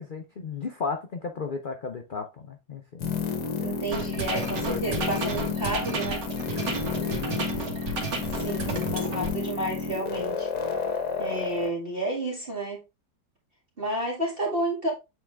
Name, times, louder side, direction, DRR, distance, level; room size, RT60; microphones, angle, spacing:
voice 1, 0.0-3.0 3.6-3.8 4.2-5.1 7.0-8.2, left 5 dB, 50° left, 0.6 m, -36 dB
sound 1, 3.0-11.7, left 5 dB, 90° left, 1.9 m, -31 dB
voice 2, 3.6-6.2 8.4-10.5 11.2-12.8 13.8-14.9, right 1 dB, 35° right, 2.1 m, -31 dB
sound 2, 3.9-9.3, right 4 dB, 85° right, 2.1 m, -32 dB
8.3 x 3.7 x 3.4 m
omnidirectional pair, 1.8 m